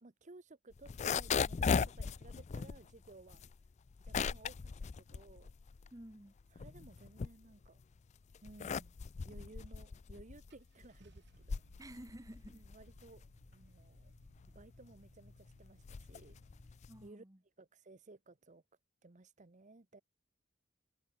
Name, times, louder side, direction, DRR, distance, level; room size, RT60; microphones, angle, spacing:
voice 1, 0.0-3.4 4.0-5.5 6.5-7.8 8.4-9.0 9.2-11.8 12.5-14.1 14.5-16.4 17.0-17.2 17.6-18.6 19.0-20.0, right 2 dB, 40° right, 1.0 m, -58 dB
sound 1, 0.7-6.0 6.4-7.8 8.3-17.1, left 6 dB, 35° left, 0.4 m, -38 dB
voice 2, 5.9-6.3 11.8-12.6 16.9-17.4, right 1 dB, 20° right, 1.5 m, -52 dB
Car / Engine starting, 10.5-16.7, right 1 dB, 60° right, 2.1 m, -64 dB
head